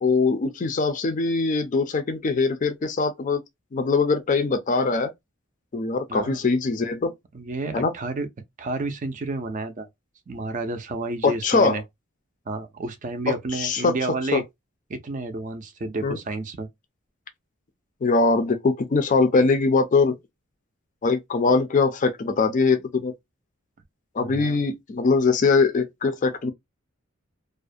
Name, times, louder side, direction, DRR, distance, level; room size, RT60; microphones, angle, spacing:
voice 1, 0.0-3.4 3.7-5.1 5.7-7.1 7.7-7.9 11.2-11.8 13.3-13.9 14.3-14.4 16.0-16.2 18.0-20.2 21.0-23.1 24.1-26.5, left 4 dB, 40° left, 0.4 m, -22 dB
voice 2, 6.1-6.4 7.3-8.3 8.6-9.9 10.3-11.8 12.5-14.4 14.9-16.7 24.2-24.6, right 2 dB, 40° right, 0.4 m, -30 dB
2.4 x 2.1 x 2.5 m
head